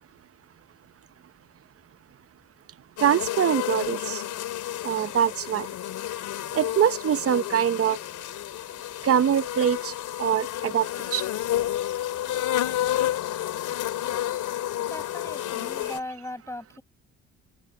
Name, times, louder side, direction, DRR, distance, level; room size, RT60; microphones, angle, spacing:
sound 1, 3.0-16.0, left 12 dB, 80° left, 3.2 m, -30 dB
voice 1, 3.0-4.2 4.8-5.7 6.5-8.0 9.0-9.9 10.2-10.9 11.1-11.2, right 9 dB, 50° right, 0.9 m, -23 dB
voice 2, 14.8-16.8, left 1 dB, 10° left, 7.5 m, -38 dB
open air
cardioid pair, 90°, 30 cm